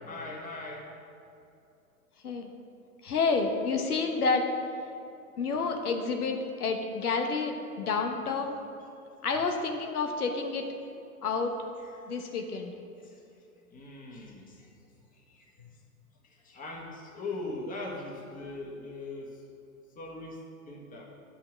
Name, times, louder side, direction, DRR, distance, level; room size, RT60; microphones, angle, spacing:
voice 1, 0.0-0.9 11.8-12.1 13.0-13.2 13.7-14.7 15.1-15.7 16.2-19.4 19.9-20.4 20.7-21.1, left 2 dB, 20° left, -1 dB, 1.6 m, -41 dB
voice 2, 3.0-4.5 5.4-8.6 9.2-10.7 11.2-11.5 12.1-12.7, left 4 dB, 85° left, 4 dB, 1.2 m, -29 dB
8.2 x 5.7 x 7.4 m, 2.7 s
hypercardioid pair, 120°, 44 cm